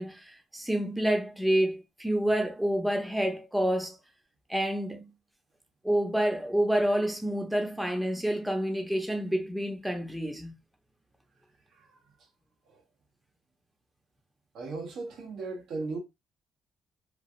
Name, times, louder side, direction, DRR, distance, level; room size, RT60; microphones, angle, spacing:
voice 1, 0.0-4.0 4.5-5.1 5.8-10.5, right 1 dB, 5° right, 0.7 m, -28 dB
voice 2, 11.7-12.0 12.7-12.8 14.5-16.0, right 3 dB, 75° right, 0.9 m, -37 dB
3.1 x 2.3 x 2.6 m
cardioid pair, 90°, 0 cm